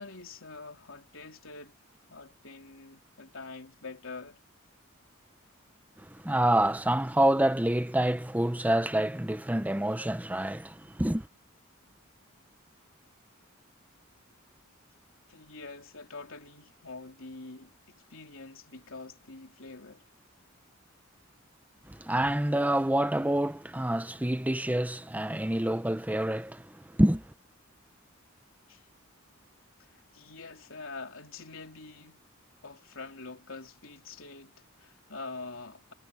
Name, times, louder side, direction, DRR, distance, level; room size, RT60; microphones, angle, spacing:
voice 1, 0.0-1.8 2.1-4.4 15.3-20.1 28.7-28.9 29.9-32.2 32.6-35.9, left 3 dB, 70° left, 3.8 m, -45 dB
voice 2, 6.1-11.3 21.9-27.2, right 1 dB, 10° right, 0.9 m, -27 dB
head